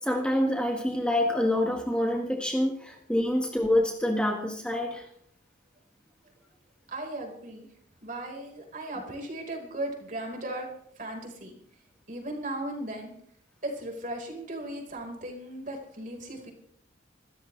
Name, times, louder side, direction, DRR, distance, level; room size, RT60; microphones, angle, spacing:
voice 1, 0.0-5.0, left 1 dB, 5° left, 1 dB, 1.7 m, -26 dB
voice 2, 6.9-7.7 8.0-10.7 11.0-11.6 12.1-13.1 13.6-16.5, right 1 dB, 40° right, 1 dB, 4.6 m, -37 dB
27.0 x 14.0 x 3.4 m, 0.70 s
head